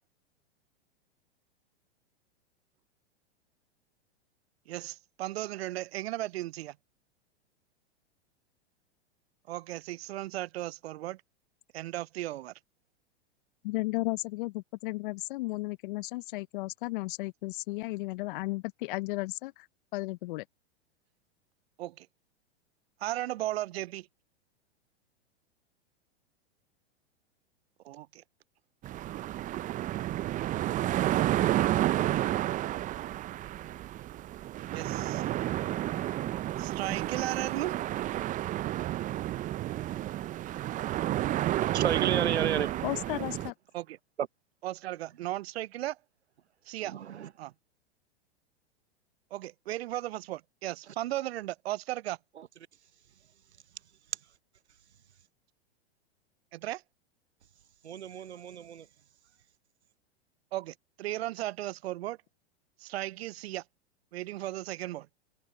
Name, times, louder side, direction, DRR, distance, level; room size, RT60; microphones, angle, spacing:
voice 1, 4.7-6.7 9.5-11.2 11.7-12.5 21.8-22.1 23.0-24.1 27.8-28.2 34.7-35.2 36.6-37.7 43.7-44.0 44.6-46.0 46.7-46.9 47.4-47.5 49.3-52.2 56.5-56.8 60.5-62.2 62.8-63.6 64.1-65.1, right 15 dB, 70° right, 0.5 m, -36 dB
voice 2, 13.6-19.7 19.9-20.4 42.8-43.5, left 21 dB, 50° left, 0.6 m, -34 dB
sound 1, 28.8-43.5, right 14 dB, 25° right, 0.6 m, -31 dB
voice 3, 41.7-42.7 44.2-44.3 46.8-47.3 52.4-52.5 57.8-58.9, right 9 dB, 90° right, 0.9 m, -32 dB
hypercardioid pair, 110°, 32 cm